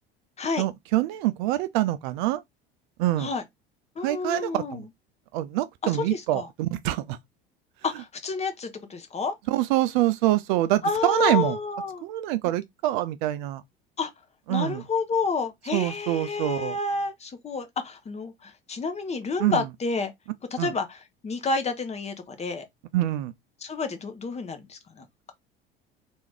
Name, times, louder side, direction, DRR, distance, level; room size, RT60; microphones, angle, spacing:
voice 1, 0.6-2.4 3.0-3.3 4.0-4.9 5.3-7.2 9.5-11.6 12.0-13.6 14.5-14.8 15.7-16.8 19.4-19.7 20.6-20.7 22.9-23.3, right 15 dB, 55° right, 0.4 m, -25 dB
voice 2, 4.0-4.8 6.1-6.5 7.8-9.3 10.8-12.0 14.0-14.1 14.5-20.1 20.5-21.0 21.2-22.7 23.6-25.3, left 4 dB, 20° left, 0.8 m, -30 dB
3.0 x 2.6 x 3.3 m
figure-of-eight pair, 65°, 30 cm